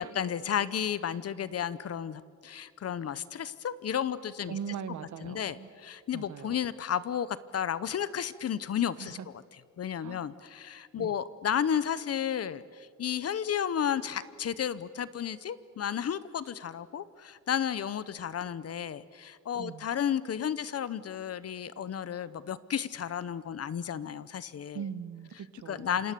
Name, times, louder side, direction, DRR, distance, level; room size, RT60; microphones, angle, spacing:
voice 1, 0.0-4.6 5.2-9.3 9.8-24.8 25.7-26.1, left 9 dB, 55° left, 17 dB, 0.9 m, -33 dB
voice 2, 4.5-5.7 6.1-6.6 9.0-9.3 10.0-10.3 11.0-11.1 19.6-19.9 24.7-25.9, right 8 dB, 80° right, 13 dB, 1.4 m, -40 dB
28.5 x 26.5 x 6.9 m, 2.1 s
wide cardioid pair, 165°, 29 cm